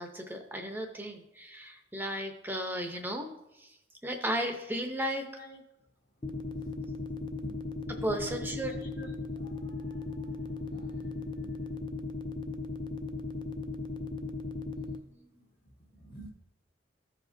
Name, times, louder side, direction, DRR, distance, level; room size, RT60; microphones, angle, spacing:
voice 1, 0.0-3.8 4.0-5.3 8.0-8.7, right 1 dB, 10° right, 4 dB, 0.6 m, -35 dB
sound 1, 6.2-15.0, left 3 dB, 25° left, 0.3 m, -37 dB
voice 2, 6.4-7.5 8.8-11.7 14.8-15.5 15.9-16.3, right 1 dB, 50° left, 1 dB, 1.6 m, -52 dB
14.5 x 5.0 x 2.6 m, 0.88 s
head